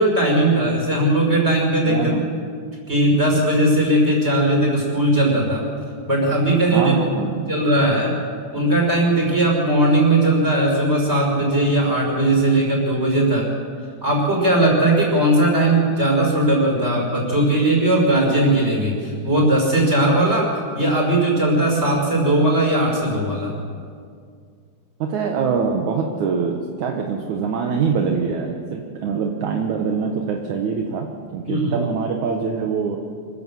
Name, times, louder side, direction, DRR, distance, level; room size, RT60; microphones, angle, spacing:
voice 1, 0.0-2.1 2.9-5.7 6.0-7.0 7.3-8.1 8.5-13.5 14.0-23.5 31.5-31.7, right 1 dB, 15° right, -1 dB, 5.7 m, -18 dB
voice 2, 1.9-2.3 6.7-7.4 25.0-33.0, right 5 dB, 65° right, 2 dB, 2.1 m, -24 dB
26.0 x 15.0 x 7.6 m, 2.2 s
omnidirectional pair, 4.9 m